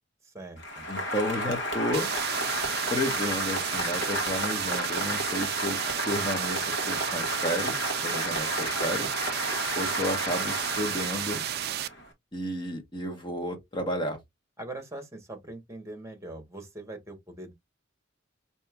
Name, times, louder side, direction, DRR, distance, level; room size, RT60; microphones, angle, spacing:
voice 1, 0.2-0.8 14.6-17.5, right 2 dB, 15° right, 1.3 m, -42 dB
Applause, 0.6-12.1, left 1 dB, 60° left, 1.4 m, -32 dB
voice 2, 0.9-2.1 2.9-5.8 6.1-9.1 9.8-11.4 12.3-14.2, left 1 dB, 25° left, 1.2 m, -32 dB
sound 1, 1.9-11.9, right 12 dB, 55° right, 0.3 m, -33 dB
5.2 x 2.9 x 2.4 m
head